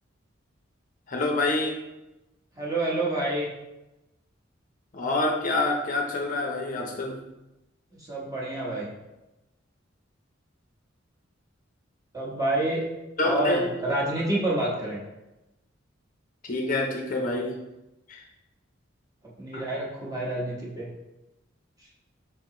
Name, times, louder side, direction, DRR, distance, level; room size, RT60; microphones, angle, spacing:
voice 1, 1.1-1.8 4.9-7.2 13.2-13.8 16.4-17.6 18.1-18.2 19.5-19.6, left 2 dB, 45° left, 0 dB, 0.5 m, -27 dB
voice 2, 2.5-3.5 7.9-8.9 12.1-12.9 13.2-15.0 19.4-20.9, right 1 dB, 20° right, -5 dB, 1.0 m, -28 dB
4.7 x 3.8 x 2.9 m, 0.98 s
head